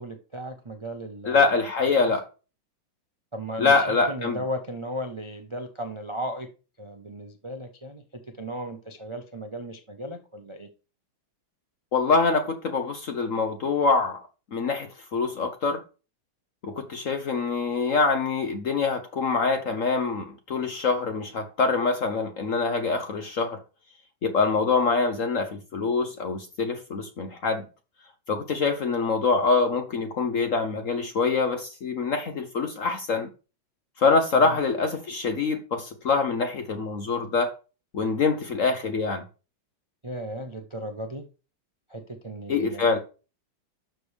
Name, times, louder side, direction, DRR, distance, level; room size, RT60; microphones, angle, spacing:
voice 1, 0.0-1.5 2.0-2.1 3.3-6.5 6.8-8.0 8.4-10.7 34.4-34.6 40.0-41.2 41.9-43.0, equal, 30° right, 0.5 m, -36 dB
voice 2, 1.3-2.3 3.6-4.4 11.9-14.2 14.5-15.8 16.6-23.6 24.2-27.6 28.3-33.3 34.0-37.5 37.9-39.2 42.5-43.0, left 4 dB, 55° left, 0.9 m, -25 dB
12.0 x 6.6 x 3.4 m
omnidirectional pair, 2.2 m